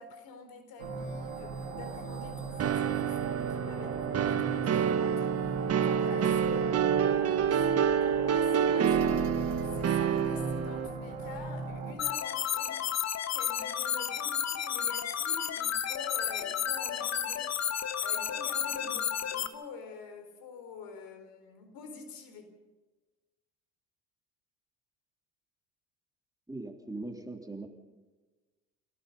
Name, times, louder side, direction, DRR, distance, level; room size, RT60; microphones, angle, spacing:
voice 1, 0.0-9.4 9.7-12.9 13.3-17.6 18.0-22.5, left 4 dB, 60° left, 7 dB, 4.6 m, -47 dB
sound 1, 0.8-11.9, right 4 dB, 90° right, 2.7 m, -39 dB
sound 2, 2.6-10.9, right 8 dB, 40° right, 1.5 m, -28 dB
sound 3, 12.0-19.5, left 9 dB, 40° left, 1.5 m, -32 dB
voice 2, 26.5-27.7, right 2 dB, 10° right, 3 dB, 3.3 m, -40 dB
28.0 x 17.5 x 5.5 m, 1.2 s
hypercardioid pair, 65°, 39 cm